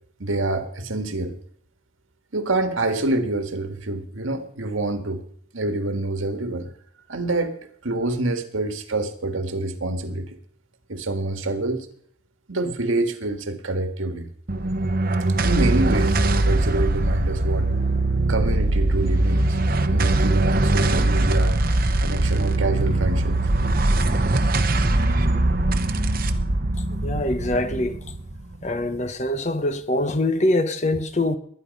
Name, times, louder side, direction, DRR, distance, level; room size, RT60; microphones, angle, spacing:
voice 1, 0.2-1.3 2.3-5.3 5.5-6.7 7.1-7.5 7.8-10.4 10.9-11.9 12.5-14.3 15.4-17.7 18.3-19.6 19.9-21.6 22.0-23.4, right 2 dB, 85° right, 1.7 m, -26 dB
sound 1, 14.5-29.1, right 2 dB, 45° right, 1.0 m, -21 dB
voice 2, 27.0-28.0 28.6-31.4, left 1 dB, 35° left, 1.0 m, -23 dB
20.5 x 10.5 x 5.4 m
head